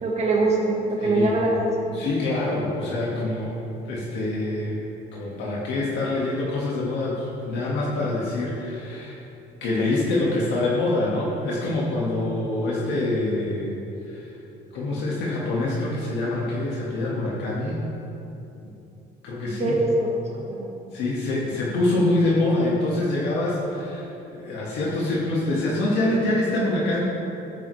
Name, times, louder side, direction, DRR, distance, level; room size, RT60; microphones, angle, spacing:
voice 1, 0.0-2.0 19.5-20.1 20.5-20.7, right 2 dB, 40° right, -1 dB, 1.6 m, -23 dB
voice 2, 1.0-1.4 1.9-4.8 5.1-9.2 9.6-13.7 14.1-14.3 14.7-17.9 19.2-19.8 20.9-27.0, left 2 dB, 80° left, -5 dB, 1.9 m, -25 dB
12.5 x 9.3 x 3.3 m, 2.9 s
cardioid pair, 150°, 18 cm